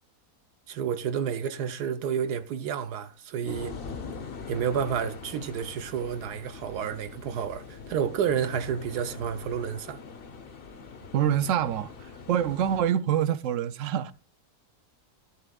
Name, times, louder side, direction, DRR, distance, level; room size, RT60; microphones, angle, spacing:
voice 1, 0.7-3.7 4.5-10.0, right 8 dB, 85° right, 1.4 m, -30 dB
sound 1, 3.5-12.8, left 5 dB, 40° left, 1.1 m, -43 dB
voice 2, 11.1-11.9 12.3-14.1, right 10 dB, 65° right, 0.9 m, -25 dB
12.0 x 11.0 x 2.3 m
omnidirectional pair, 1.7 m